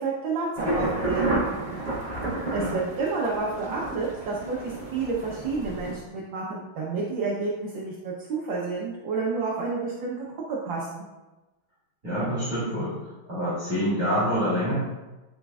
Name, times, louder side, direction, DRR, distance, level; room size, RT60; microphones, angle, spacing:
voice 1, 0.0-1.4 2.5-11.1, right 4 dB, 70° right, -4 dB, 1.6 m, -30 dB
sound 1, 0.6-5.9, right 2 dB, 20° right, 1.3 m, -30 dB
voice 2, 12.0-12.9 13.3-14.7, equal, 40° right, -12 dB, 2.9 m, -26 dB
12.0 x 4.2 x 2.4 m, 1.1 s
omnidirectional pair, 2.3 m